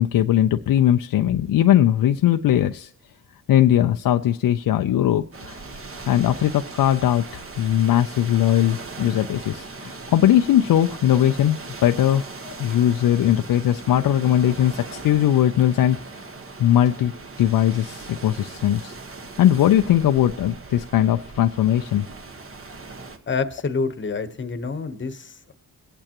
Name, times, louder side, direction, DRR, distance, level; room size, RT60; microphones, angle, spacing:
voice 1, 0.0-2.9 3.5-5.6 6.1-16.0 16.6-17.1 17.4-19.0 19.4-22.1, left 11 dB, 65° left, 7 dB, 0.5 m, -19 dB
sound 1, 5.3-23.2, right 3 dB, 35° right, 1.4 m, -39 dB
voice 2, 23.3-25.5, left 4 dB, 30° left, 10 dB, 1.1 m, -27 dB
23.0 x 8.8 x 3.0 m, 0.81 s
cardioid pair, 95°, 37 cm